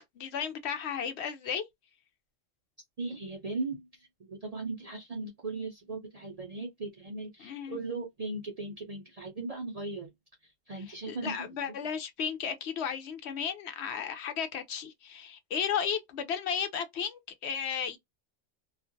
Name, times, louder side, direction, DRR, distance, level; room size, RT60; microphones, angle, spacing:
voice 1, 0.0-1.6 7.4-7.8 10.9-18.0, left 7 dB, 70° left, 0.8 m, -34 dB
voice 2, 3.0-10.1 10.7-11.5, right 3 dB, 50° right, 0.4 m, -38 dB
2.4 x 2.0 x 2.6 m
omnidirectional pair, 1.2 m